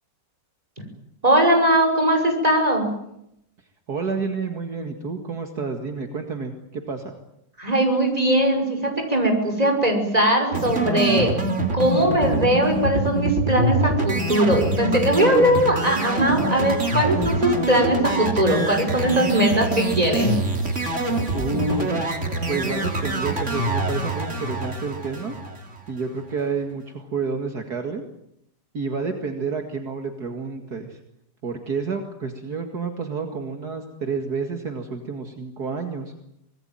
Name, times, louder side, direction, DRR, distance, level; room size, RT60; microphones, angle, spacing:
voice 1, 1.2-2.9 7.6-11.3 11.7-20.3, right 1 dB, 20° right, 4 dB, 6.1 m, -20 dB
voice 2, 3.9-7.2 18.5-18.6 21.3-21.9 22.5-25.3 25.9-28.0 28.7-31.0 31.4-36.1, right 4 dB, 60° right, 5 dB, 2.6 m, -29 dB
sound 1, 10.5-25.9, right 2 dB, 40° right, 3.4 m, -25 dB
26.0 x 20.0 x 9.2 m, 0.78 s
omnidirectional pair, 1.9 m